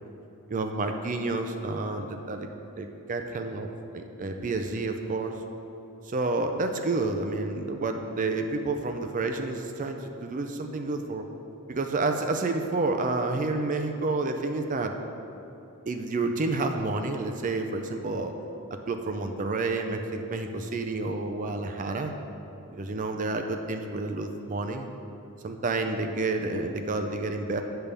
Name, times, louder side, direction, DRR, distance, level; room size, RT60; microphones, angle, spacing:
voice 1, 0.5-2.5 2.8-3.7 3.9-5.4 6.1-11.2 11.7-14.9 15.9-18.3 18.9-22.1 22.7-24.9 25.4-27.6, right 3 dB, 35° right, 5 dB, 0.4 m, -29 dB
8.8 x 3.4 x 6.7 m, 2.9 s
head